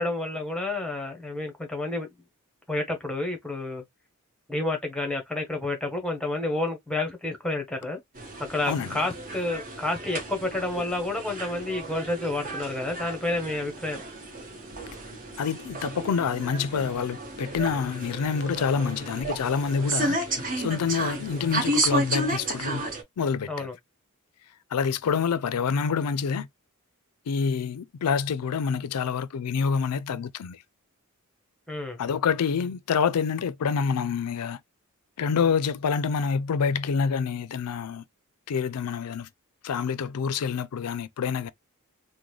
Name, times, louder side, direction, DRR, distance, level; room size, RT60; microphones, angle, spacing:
voice 1, 0.0-2.2 2.7-3.8 4.5-8.0 8.5-14.0 23.5-23.7 31.7-32.0, left 2 dB, 5° left, 1.0 m, -30 dB
sound 1, 8.2-23.0, right 2 dB, 40° right, 1.2 m, -32 dB
voice 2, 8.7-9.0 15.4-22.8 23.2-23.7 24.7-26.5 27.3-30.6 32.0-34.6 35.2-38.0 38.5-39.3 39.6-41.5, left 6 dB, 90° left, 0.4 m, -27 dB
3.7 x 2.2 x 3.1 m
head